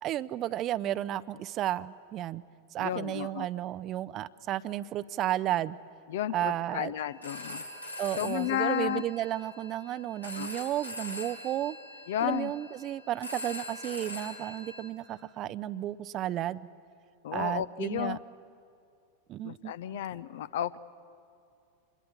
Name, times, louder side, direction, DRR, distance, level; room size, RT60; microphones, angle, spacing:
voice 1, 0.0-2.4 2.7-5.8 6.3-6.9 8.0-11.8 12.2-16.7 17.3-18.2 19.3-20.0, right 13 dB, 35° right, 17 dB, 0.6 m, -33 dB
voice 2, 2.8-3.5 6.1-7.6 8.2-9.0 10.4-10.5 12.1-12.5 17.2-18.2 19.4-20.8, left 12 dB, 55° left, 16 dB, 0.7 m, -32 dB
Telephone, 7.0-14.9, left 1 dB, 85° left, 3.5 m, -43 dB
26.5 x 21.5 x 8.6 m, 2.5 s
figure-of-eight pair, 90°, 0 cm